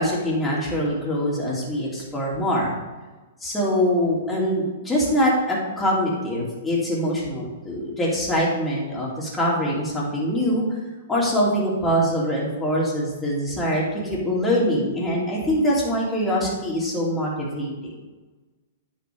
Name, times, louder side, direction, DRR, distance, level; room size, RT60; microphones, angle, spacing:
voice 1, 0.0-2.7 3.4-10.8 11.1-17.9, equal, 10° left, -5 dB, 2.9 m, -23 dB
9.3 x 6.1 x 3.6 m, 1.2 s
figure-of-eight pair, 110°, 0 cm